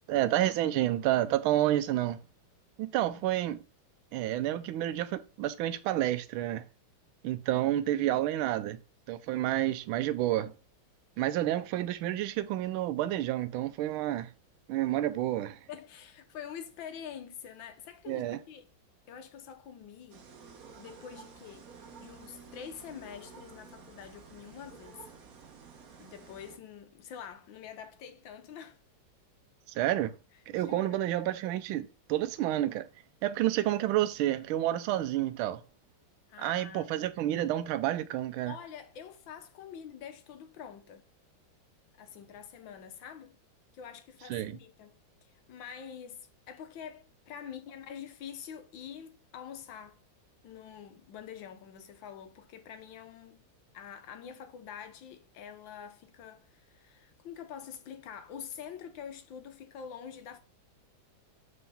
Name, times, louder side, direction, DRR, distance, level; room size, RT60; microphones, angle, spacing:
voice 1, 0.1-2.2 2.8-3.6 4.1-6.6 7.2-8.8 9.1-10.5 11.2-14.3 14.7-15.6 18.1-18.4 29.7-30.1 30.5-32.9 33.2-35.6 36.4-38.5 44.3-44.6, right 13 dB, 85° right, 1.4 m, -29 dB
voice 2, 7.5-8.2 15.7-18.6 19.1-20.3 20.8-21.7 22.0-25.0 26.0-28.8 30.5-31.0 36.3-36.9 38.5-41.1 42.0-43.4 43.7-50.0 50.4-53.5 53.7-60.4, left 8 dB, 70° left, 1.5 m, -46 dB
sound 1, 20.1-26.6, right 5 dB, 55° right, 1.2 m, -52 dB
5.6 x 4.2 x 4.1 m
omnidirectional pair, 2.2 m